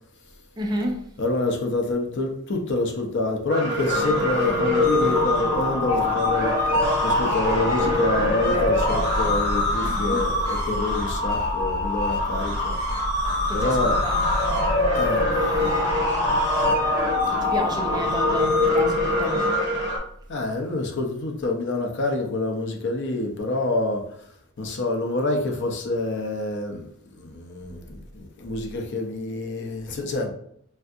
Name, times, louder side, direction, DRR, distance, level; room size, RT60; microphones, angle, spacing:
voice 1, 0.6-1.1 9.8-10.2 13.5-14.2 17.3-19.6, right 1 dB, 20° right, 0.3 m, -31 dB
voice 2, 1.2-12.8 13.5-14.0 14.9-15.3 17.3-17.4 20.3-24.1 24.6-30.3, left 2 dB, 55° left, 0.5 m, -27 dB
sound 1, 3.5-20.0, left 2 dB, 60° right, 1.3 m, -23 dB
3.4 x 2.6 x 2.4 m
head